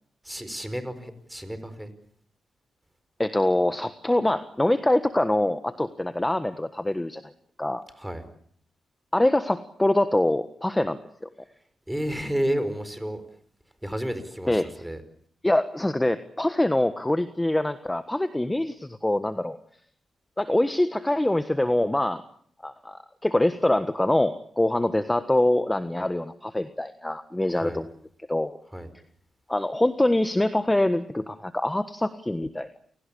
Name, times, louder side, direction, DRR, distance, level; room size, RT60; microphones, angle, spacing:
voice 1, 0.2-1.9 8.0-8.2 11.9-13.2 13.8-15.0 27.5-27.8 28.7-28.9, equal, 5° right, 11 dB, 4.8 m, -31 dB
voice 2, 3.2-7.2 7.6-7.8 9.1-11.3 14.5-14.7 15.4-19.6 20.4-22.2 22.6-27.9 28.3-28.6 29.5-32.8, left 1 dB, 10° left, 10 dB, 1.4 m, -24 dB
28.5 x 18.0 x 8.6 m, 0.63 s
cardioid pair, 70°, 0 cm